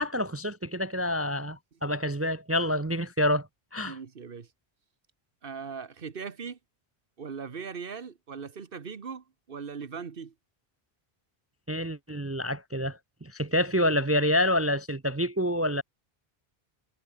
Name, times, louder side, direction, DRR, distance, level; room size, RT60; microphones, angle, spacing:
voice 1, 0.0-3.5 3.7-4.0 11.7-15.8, left 1 dB, 20° right, 0.4 m, -27 dB
voice 2, 3.8-4.5 5.4-6.6 7.2-10.3, right 6 dB, 60° right, 1.4 m, -39 dB
omnidirectional pair, 1.1 m